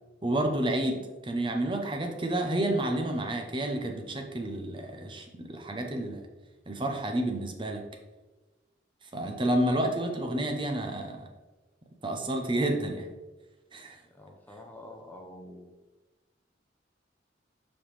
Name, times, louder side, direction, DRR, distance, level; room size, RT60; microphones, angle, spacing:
voice 1, 0.2-6.2 6.7-7.8 9.1-11.3 12.0-13.1 13.7-14.0, right 1 dB, 25° right, 3 dB, 0.7 m, -30 dB
voice 2, 14.1-15.7, left 1 dB, 10° left, 1 dB, 0.7 m, -47 dB
7.6 x 5.4 x 3.3 m, 1.2 s
head